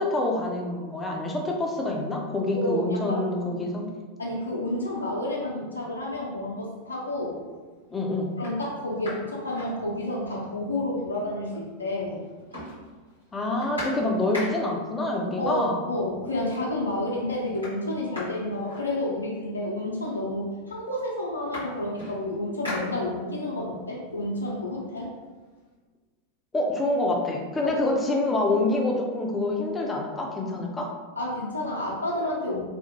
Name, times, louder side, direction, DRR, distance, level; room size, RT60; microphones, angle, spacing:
voice 1, 0.0-3.9 7.9-8.3 13.3-15.8 26.5-30.9, left 2 dB, 15° left, 0 dB, 0.4 m, -26 dB
voice 2, 2.5-3.2 4.2-7.4 8.4-12.2 15.4-25.1 27.6-27.7 31.2-32.6, left 1 dB, 80° left, -3 dB, 0.5 m, -30 dB
sound 1, 6.9-7.4 7.9-8.0 8.3-10.4 10.7-10.8 11.0-11.9 12.2-14.9 15.8-15.9 16.3-16.8 17.1-19.5 20.3-20.4 20.7-23.5 23.9-25.6, left 1 dB, 85° right, 1.2 m, -40 dB
2.8 x 2.0 x 2.7 m, 1.3 s
figure-of-eight pair, 90°, 0 cm